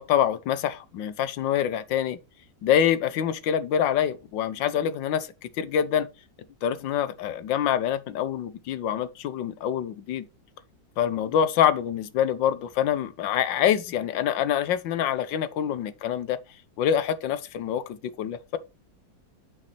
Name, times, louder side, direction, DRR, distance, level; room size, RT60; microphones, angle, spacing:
voice 1, 0.0-2.2 2.6-6.1 6.6-10.3 11.0-16.4 16.8-18.6, left 9 dB, 90° left, 1.5 m, -25 dB
8.2 x 6.3 x 4.4 m
omnidirectional pair, 1.9 m